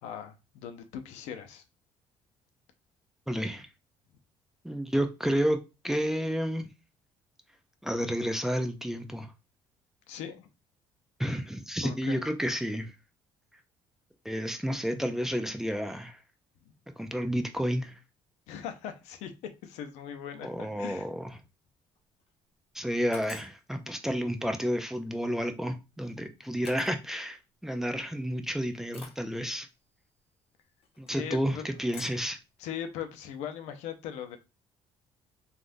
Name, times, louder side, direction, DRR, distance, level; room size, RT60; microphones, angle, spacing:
voice 1, 0.0-1.6 10.1-10.5 11.8-12.2 16.7-16.8 18.5-19.3 19.6-21.1 31.1-31.6 32.6-34.4, left 9 dB, 90° left, 0.6 m, -39 dB
voice 2, 3.3-3.7 4.6-6.7 7.8-9.3 11.2-12.9 14.2-16.2 17.0-17.9 20.4-21.3 22.7-29.7 31.0-32.4, equal, 5° right, 0.4 m, -31 dB
sound 1, 22.0-22.3 23.1-23.6 25.6-25.8 26.6-27.0 27.9-28.0 28.9-29.3 30.8-31.2 31.9-32.3, left 5 dB, 55° left, 0.9 m, -48 dB
3.4 x 2.4 x 2.5 m
cardioid pair, 105°, 11 cm